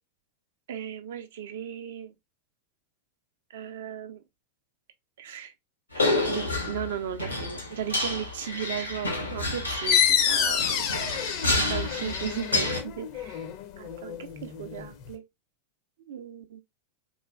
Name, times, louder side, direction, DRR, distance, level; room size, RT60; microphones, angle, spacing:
voice 1, 0.7-2.1 3.5-4.2 5.2-5.5 5.9-11.0 11.7-13.5 13.8-15.2 16.1-16.6, right 9 dB, 60° right, 0.4 m, -36 dB
sound 1, 5.9-12.8, left 2 dB, 80° left, 0.7 m, -29 dB
sound 2, 9.9-15.1, left 8 dB, 45° left, 0.5 m, -28 dB
3.0 x 2.3 x 2.3 m
figure-of-eight pair, 90°, 0 cm